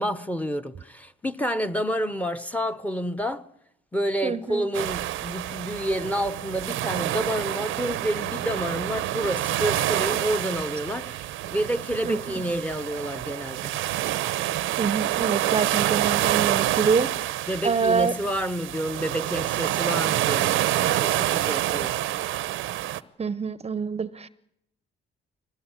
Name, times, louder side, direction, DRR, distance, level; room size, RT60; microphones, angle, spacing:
voice 1, 0.0-3.5 3.9-13.8 17.5-22.0, equal, 5° left, 1.1 m, -29 dB
voice 2, 4.2-4.7 12.1-12.4 14.8-17.1 17.6-18.1 23.2-24.3, right 5 dB, 30° right, 0.8 m, -26 dB
sound 1, 4.7-23.0, right 14 dB, 90° right, 0.8 m, -27 dB
22.5 x 18.5 x 9.0 m
cardioid pair, 90°, 20 cm